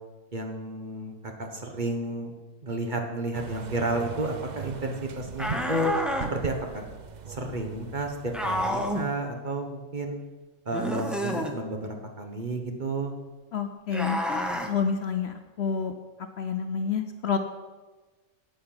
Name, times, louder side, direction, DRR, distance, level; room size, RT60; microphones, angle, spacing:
voice 1, 0.3-2.3 2.6-5.9 6.3-6.8 7.3-10.2 10.6-13.1, right 2 dB, 35° right, 3 dB, 1.2 m, -31 dB
sound 1, 3.3-9.1, right 6 dB, 60° right, 0.4 m, -40 dB
sound 2, 5.4-6.3 8.3-9.1 10.7-11.5 13.9-14.7, equal, ahead, 0.8 m, -29 dB
voice 2, 13.5-15.9 16.4-17.4, left 6 dB, 60° left, 7 dB, 0.8 m, -29 dB
10.5 x 5.8 x 8.7 m, 1.3 s
omnidirectional pair, 1.5 m